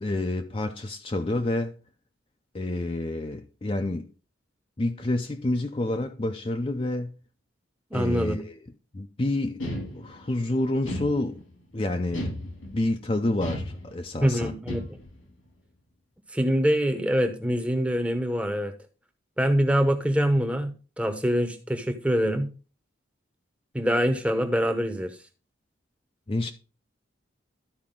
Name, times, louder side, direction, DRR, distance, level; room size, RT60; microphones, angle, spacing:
voice 1, 0.0-1.8 2.5-4.1 4.8-7.2 7.9-8.6 8.9-9.6 9.9-11.4 11.7-12.3 12.7-14.5 26.3-26.5, left 2 dB, 30° left, 0.5 m, -28 dB
voice 2, 7.9-8.4 14.2-14.8 16.3-18.7 19.4-22.5 23.7-25.1, equal, 5° right, 0.8 m, -24 dB
Heavily-muted guitar thumps, 9.6-10.4 10.8-11.6 12.1-12.9 13.4-14.2 14.7-15.3, left 1 dB, 90° left, 2.7 m, -34 dB
12.5 x 4.8 x 3.7 m
head